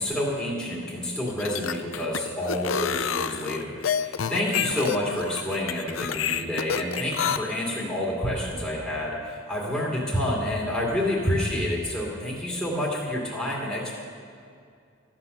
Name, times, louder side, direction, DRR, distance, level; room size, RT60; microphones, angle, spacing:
voice 1, 0.0-13.9, left 1 dB, ahead, -6 dB, 2.3 m, -28 dB
sound 1, 1.3-7.4, left 7 dB, 80° left, 0.5 m, -28 dB
13.5 x 8.9 x 6.7 m, 2.3 s
head